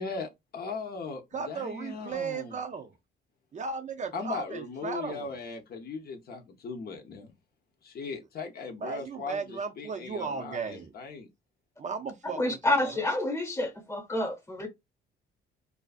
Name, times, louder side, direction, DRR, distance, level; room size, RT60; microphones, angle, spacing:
voice 1, 0.0-2.6 4.1-7.3 7.8-11.3, left 4 dB, 50° left, 0.6 m, -38 dB
voice 2, 1.3-2.9 3.5-5.4 8.8-10.9 11.8-12.9, right 5 dB, 40° right, 0.4 m, -36 dB
voice 3, 12.4-14.7, left 1 dB, 15° left, 0.9 m, -28 dB
2.4 x 2.3 x 2.4 m
cardioid pair, 90°, 20 cm